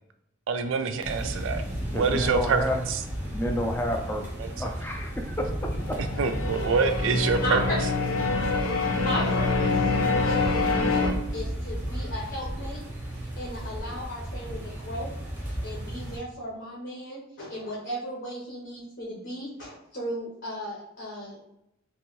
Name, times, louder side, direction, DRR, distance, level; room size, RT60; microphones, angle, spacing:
voice 1, 0.5-1.6 1.9-2.6 4.4-4.7 6.2-7.6, right 5 dB, 65° right, 8 dB, 0.4 m, -26 dB
sound 1, 1.0-16.2, right 1 dB, 10° right, 0.8 m, -34 dB
voice 2, 1.9-2.9 3.3-4.2 4.5-5.5 5.9-6.0, left 1 dB, 10° left, 1 dB, 0.4 m, -30 dB
sound 2, 5.8-11.1, left 3 dB, 90° left, 0.6 m, -26 dB
voice 3, 7.4-7.8 9.0-9.8 10.2-12.8 13.1-15.1 15.4-21.4, equal, 60° left, -5 dB, 0.9 m, -35 dB
3.0 x 2.7 x 2.9 m, 0.83 s
head